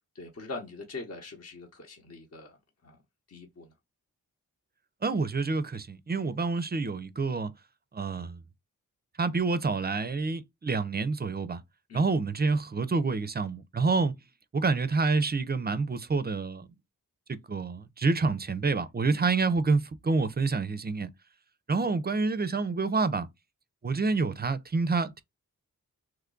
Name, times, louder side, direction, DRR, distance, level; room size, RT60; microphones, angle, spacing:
voice 1, 0.1-2.6 2.8-3.0 3.3-3.7 11.9-12.1 19.1-19.2, left 3 dB, 45° left, 0.9 m, -42 dB
voice 2, 5.0-7.5 7.9-8.4 9.2-11.6 11.9-14.1 14.5-16.7 17.3-21.1 21.7-23.3 23.8-25.2, right 4 dB, 30° right, 0.4 m, -28 dB
3.1 x 2.2 x 3.7 m
wide cardioid pair, 70°, 36 cm